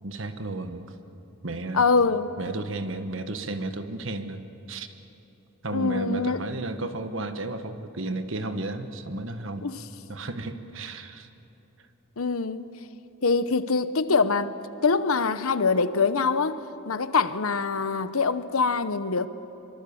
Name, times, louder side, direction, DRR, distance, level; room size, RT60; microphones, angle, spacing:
voice 1, 0.0-0.9 1.4-1.8 2.4-4.4 4.7-4.9 5.6-9.7 10.1-11.3, right 2 dB, 65° right, 8 dB, 1.3 m, -33 dB
voice 2, 1.7-2.3 5.7-6.4 9.6-9.8 12.2-12.6 13.2-16.6 16.9-19.3, left 4 dB, 85° left, 13 dB, 0.9 m, -24 dB
24.0 x 24.0 x 7.1 m, 3.0 s
head